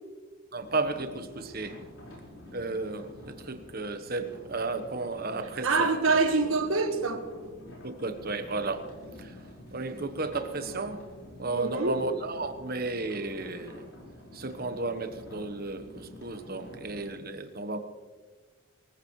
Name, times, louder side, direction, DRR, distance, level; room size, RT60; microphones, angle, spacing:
voice 1, 0.5-1.8 2.5-5.9 7.8-8.9 9.2-9.4 9.7-11.1 11.4-13.8 14.3-17.8, right 3 dB, 45° right, 1.2 m, -33 dB
sound 1, 0.6-17.2, left 1 dB, 65° left, 4.9 m, -48 dB
voice 2, 5.6-7.3 11.5-12.0, right 3 dB, 70° right, 1.5 m, -25 dB
23.5 x 14.5 x 3.2 m
head